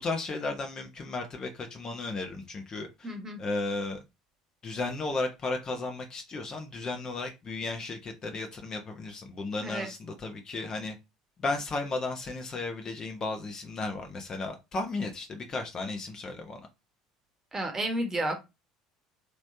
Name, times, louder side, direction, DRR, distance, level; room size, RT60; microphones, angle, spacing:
voice 1, 0.0-3.1 3.4-4.0 4.6-11.0 11.4-16.6, left 3 dB, 30° left, 0.8 m, -34 dB
voice 2, 3.0-3.4 9.6-9.9 17.5-18.3, right 1 dB, 20° right, 1.2 m, -31 dB
3.2 x 3.1 x 2.7 m
figure-of-eight pair, 65°, 2 cm